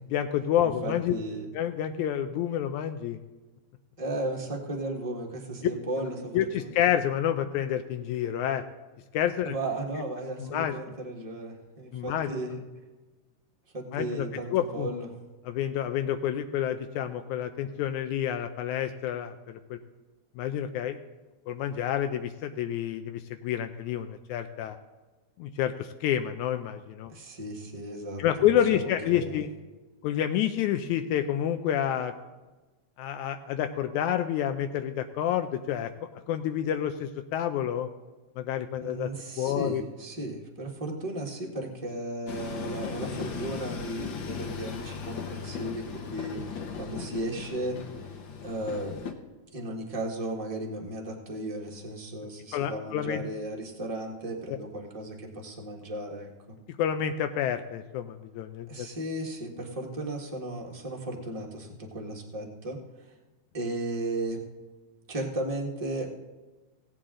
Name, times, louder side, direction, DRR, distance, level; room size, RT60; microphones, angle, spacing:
voice 1, 0.1-1.1 1.5-3.2 6.3-8.6 9.1-9.6 10.4-10.8 11.9-12.3 13.9-14.3 14.5-14.9 15.5-19.8 20.4-21.0 21.5-24.8 25.4-27.1 28.2-29.5 30.0-32.1 33.0-35.9 36.3-37.9 38.4-39.1 39.4-39.8 52.5-53.2 56.8-58.9, left 10 dB, 85° left, 7 dB, 2.0 m, -28 dB
voice 2, 0.6-1.5 4.0-6.7 9.4-12.5 13.7-15.1 27.1-29.4 38.8-46.4 46.7-47.8 48.4-49.1 49.5-56.6 58.7-62.8 63.5-64.4 65.1-66.1, right 1 dB, 20° right, -1 dB, 0.9 m, -35 dB
Train, 42.3-49.1, left 6 dB, 60° left, 1.3 m, -37 dB
17.0 x 8.7 x 3.8 m, 1.2 s
omnidirectional pair, 3.4 m